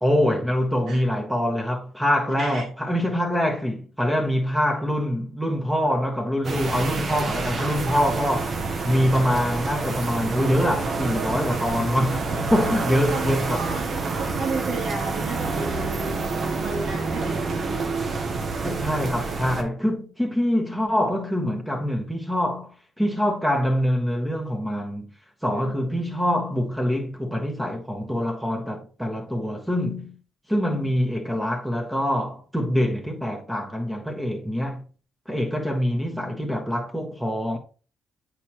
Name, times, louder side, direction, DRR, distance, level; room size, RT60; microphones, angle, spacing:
voice 1, 0.0-13.6 18.6-25.1 25.4-30.2 30.5-34.8 35.3-37.6, equal, 5° right, 1.4 m, -24 dB
sound 1, 6.4-19.6, right 3 dB, 50° right, 0.9 m, -28 dB
voice 2, 12.6-13.9 14.1-15.9 16.5-17.9 25.5-26.0, right 3 dB, 80° right, 2.0 m, -34 dB
8.2 x 4.8 x 2.9 m
cardioid pair, 90°, 0 cm